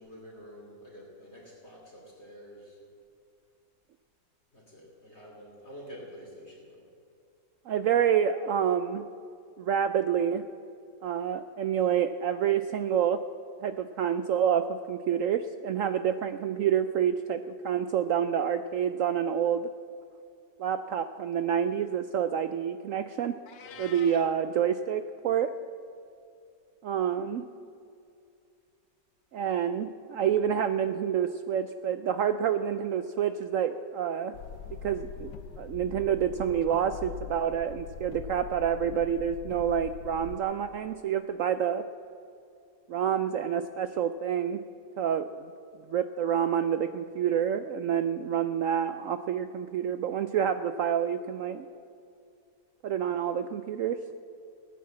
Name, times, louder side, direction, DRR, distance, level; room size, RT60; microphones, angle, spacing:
voice 1, 0.0-2.8 4.5-6.9 23.6-24.3, equal, 40° left, -3 dB, 3.1 m, -48 dB
voice 2, 7.7-9.1 9.6-10.4 11.0-13.2 13.6-19.7 20.6-23.4 23.8-25.5 26.8-27.4 29.3-34.3 34.8-41.8 42.9-44.6 45.0-45.3 45.9-51.7 52.8-54.0, right 8 dB, 80° right, 10 dB, 0.7 m, -28 dB
Meow, 23.5-24.3, left 8 dB, 65° left, 1.3 m, -47 dB
sound 1, 34.3-40.4, left 8 dB, 90° left, 1.4 m, -42 dB
16.5 x 9.4 x 7.3 m, 2.4 s
omnidirectional pair, 1.9 m